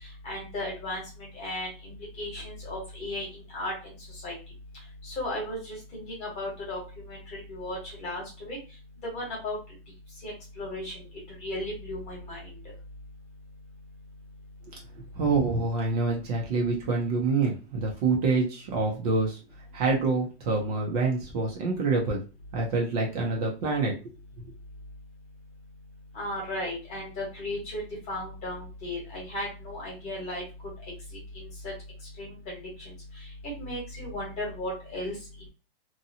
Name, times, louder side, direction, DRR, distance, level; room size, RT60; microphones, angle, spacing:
voice 1, 0.2-3.7 4.2-4.3 5.0-6.8 7.1-8.6 9.0-9.6 10.2-11.0 11.4-12.5 26.1-30.4 31.3-31.7 32.2-32.9 33.4-35.1, left 1 dB, 20° left, -3 dB, 1.2 m, -35 dB
voice 2, 15.0-19.4 19.7-22.2 22.5-24.0, right 3 dB, 40° right, -1 dB, 0.7 m, -26 dB
2.7 x 2.2 x 2.7 m, 0.31 s
hypercardioid pair, 165°, 32 cm